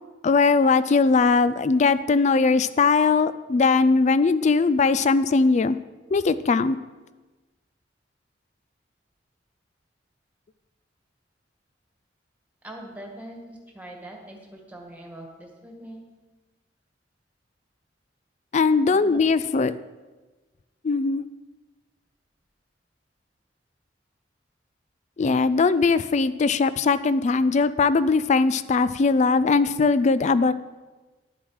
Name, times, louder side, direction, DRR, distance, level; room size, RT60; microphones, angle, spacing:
voice 1, 0.2-5.8 6.1-6.8 18.5-19.7 20.8-21.2 25.2-30.5, left 4 dB, 40° left, 15 dB, 0.4 m, -20 dB
voice 2, 12.6-16.0 18.9-19.2, right 1 dB, 10° right, 0 dB, 1.7 m, -42 dB
11.0 x 7.3 x 4.8 m, 1.2 s
head